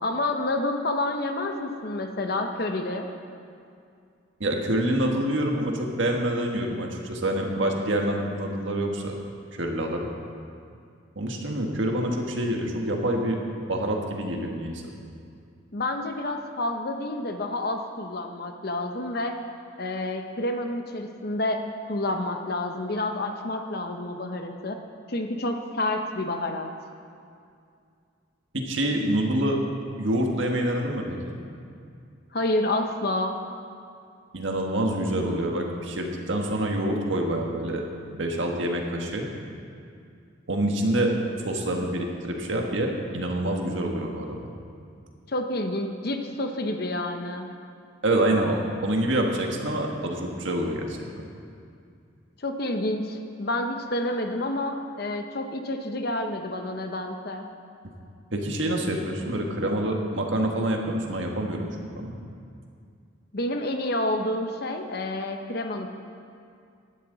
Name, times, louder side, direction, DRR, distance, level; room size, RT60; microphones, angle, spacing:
voice 1, 0.0-3.1 15.7-19.3 19.8-21.6 21.9-24.8 25.1-26.7 32.3-33.3 45.3-47.5 52.4-57.5 63.3-65.9, left 1 dB, 55° left, 5 dB, 0.9 m, -29 dB
voice 2, 4.4-9.1 9.5-10.1 11.1-13.4 13.7-14.8 28.5-29.6 30.0-31.4 34.3-39.3 40.5-41.1 41.4-44.4 48.0-51.0 58.3-62.1, right 1 dB, 75° right, 1 dB, 1.7 m, -26 dB
17.5 x 11.5 x 4.0 m, 2.4 s
head